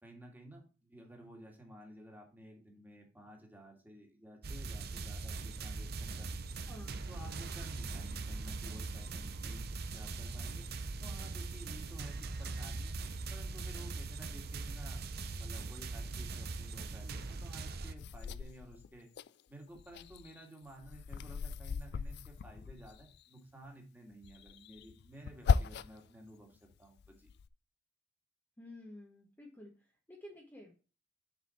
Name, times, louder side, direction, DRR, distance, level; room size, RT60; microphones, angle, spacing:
voice 1, 0.0-6.5 7.1-10.7 11.0-12.9 13.3-15.0 15.3-19.1 19.5-27.3, right 1 dB, 10° right, 1 dB, 2.0 m, -53 dB
sound 1, 4.4-17.9, right 3 dB, 55° right, 0.7 m, -41 dB
voice 2, 6.7-7.0 28.6-30.7, left 1 dB, 10° left, -2 dB, 1.1 m, -52 dB
sound 2, 18.0-19.3 19.7-23.2 24.2-26.1 26.6-27.5, left 5 dB, 55° left, 0.3 m, -37 dB
6.6 x 4.9 x 4.2 m, 0.35 s
head